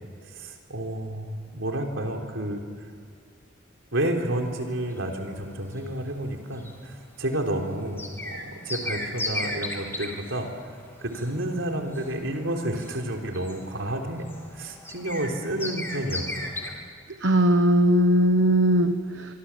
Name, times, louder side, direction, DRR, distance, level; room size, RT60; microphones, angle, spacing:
voice 1, 0.2-2.6 3.9-10.5 11.0-14.3 14.5-16.8, right 1 dB, 85° right, 2 dB, 3.9 m, -30 dB
sound 1, 4.0-16.7, left 1 dB, 10° left, 3.3 m, -37 dB
voice 2, 17.2-19.3, equal, 65° right, 7 dB, 1.1 m, -19 dB
25.5 x 25.0 x 7.5 m, 2.2 s
head